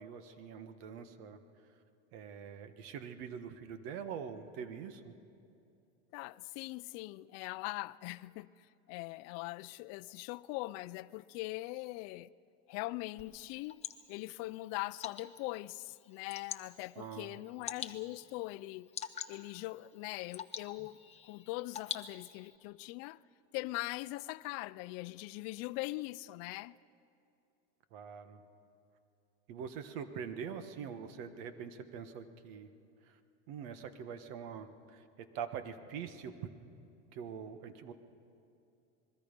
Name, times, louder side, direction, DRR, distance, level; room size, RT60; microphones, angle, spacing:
voice 1, 0.0-1.4 2.1-5.1 16.9-17.4 27.9-28.4 29.5-32.7 33.1-33.2 33.5-36.5 37.1-37.9, right 7 dB, 65° right, 1.5 m, -44 dB
voice 2, 6.1-8.5 8.9-12.3 12.7-13.8 14.1-18.9 19.3-21.0 21.2-23.2 23.5-26.8, left 20 dB, 55° left, 0.5 m, -41 dB
Water / Drip, 13.2-22.6, left 8 dB, 20° left, 0.7 m, -47 dB
27.0 x 21.5 x 5.3 m
supercardioid pair, 150°, 31 cm